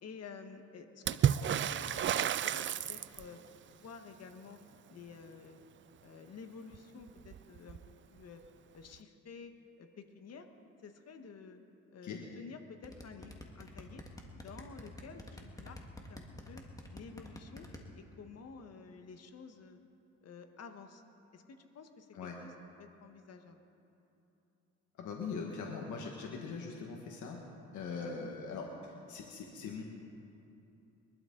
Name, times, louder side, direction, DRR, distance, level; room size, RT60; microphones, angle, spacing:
voice 1, 0.0-3.4 3.7-4.6 4.9-5.6 6.0-7.8 8.1-8.4 8.7-10.5 10.8-11.6 11.9-14.0 14.3-15.8 16.1-16.6 16.9-17.7 17.9-19.8 20.2-21.0 21.3-22.5 22.8-23.6 28.0-28.3, left 5 dB, 55° left, 6 dB, 1.5 m, -51 dB
Water / Splash splatter, 1.1-3.5 6.7-6.8 7.1-7.9 8.9-9.0, right 10 dB, 40° right, 0.4 m, -31 dB
sound 1, 12.8-17.8, left 1 dB, 10° left, 1.9 m, -47 dB
voice 2, 24.9-27.4 27.7-29.8, left 5 dB, 75° left, 0 dB, 1.6 m, -41 dB
23.0 x 12.5 x 3.9 m, 2.9 s
cardioid pair, 90°, 30 cm